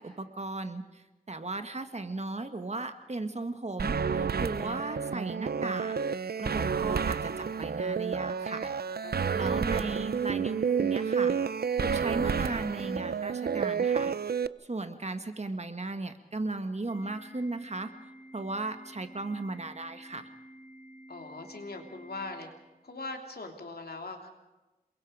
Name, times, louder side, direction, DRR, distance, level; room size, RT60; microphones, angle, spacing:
voice 1, 0.0-5.9 6.4-8.7 9.3-11.3 11.7-14.1 14.6-17.9 18.3-20.3, right 2 dB, 45° right, 8 dB, 1.8 m, -36 dB
sound 1, 3.8-14.5, right 6 dB, 85° right, 0.6 m, -30 dB
voice 2, 9.0-9.4 21.1-22.5 22.8-24.3, left 3 dB, 85° left, 4 dB, 3.1 m, -41 dB
Organ, 16.9-22.9, right 1 dB, 20° right, 7.1 m, -51 dB
28.0 x 22.5 x 5.0 m, 1.1 s
wide cardioid pair, 80°, 16 cm